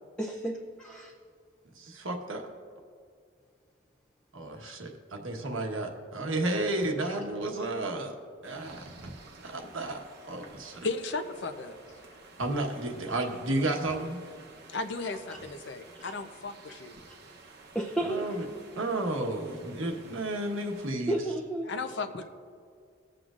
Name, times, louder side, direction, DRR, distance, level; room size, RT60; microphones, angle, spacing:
voice 1, 0.2-1.1 4.6-4.7 7.0-7.1 15.3-15.4 17.7-18.5 21.1-21.7, right 1 dB, 5° left, -2 dB, 0.6 m, -33 dB
voice 2, 1.7-2.4 4.3-8.1 8.4-8.9 9.4-10.0 10.3-10.9 12.4-14.2 18.0-18.5 18.8-21.2, right 2 dB, 90° right, 2 dB, 1.3 m, -32 dB
sound 1, 8.4-20.9, right 3 dB, 55° right, 0.9 m, -52 dB
voice 3, 10.8-11.8 14.7-17.0 21.6-22.2, left 3 dB, 60° left, 8 dB, 0.7 m, -35 dB
21.0 x 7.8 x 2.5 m, 2.2 s
head